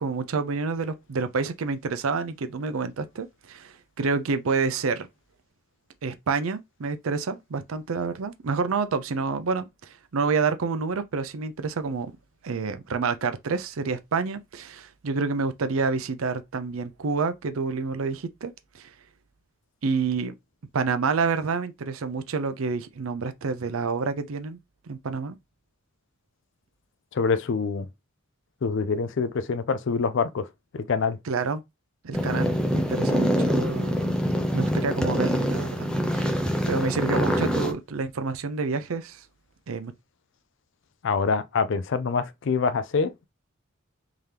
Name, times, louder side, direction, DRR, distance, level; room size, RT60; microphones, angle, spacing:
voice 1, 0.0-5.1 6.0-12.1 12.4-18.9 19.8-20.3 20.7-24.6 24.9-25.4 31.3-31.6 32.0-34.2 34.5-35.9 36.1-39.2 39.7-39.9, right 4 dB, 90° right, 0.5 m, -28 dB
voice 2, 27.1-27.9 28.6-30.5 30.7-31.2 41.0-43.3, left 5 dB, 60° left, 0.4 m, -25 dB
sound 1, 32.1-37.7, equal, 5° left, 0.6 m, -25 dB
3.7 x 2.8 x 3.3 m
head